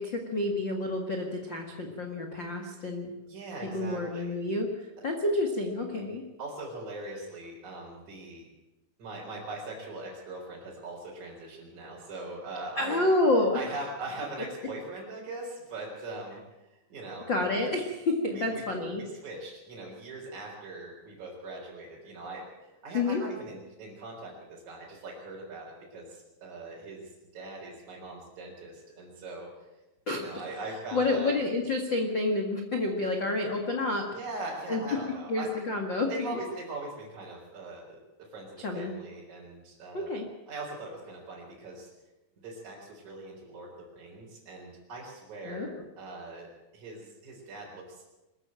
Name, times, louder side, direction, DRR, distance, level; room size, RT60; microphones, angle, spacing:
voice 1, 0.0-3.1 3.7-4.7 5.0-6.2 12.8-13.6 17.3-19.0 22.9-23.2 30.1-30.2 30.9-34.1 34.7-34.8 35.3-36.1 38.6-38.9 39.9-40.2 45.4-45.7, left 2 dB, 80° left, 2 dB, 1.0 m, -29 dB
voice 2, 3.3-4.3 6.4-8.5 9.0-13.0 13.5-16.4 16.7-17.3 18.3-18.6 19.0-29.5 30.1-31.3 34.1-35.5 36.1-40.2 40.5-41.9 42.4-45.7 46.0-46.5 46.7-48.0, right 2 dB, 40° right, -4 dB, 5.1 m, -41 dB
23.0 x 14.0 x 8.9 m, 1.0 s
omnidirectional pair, 5.5 m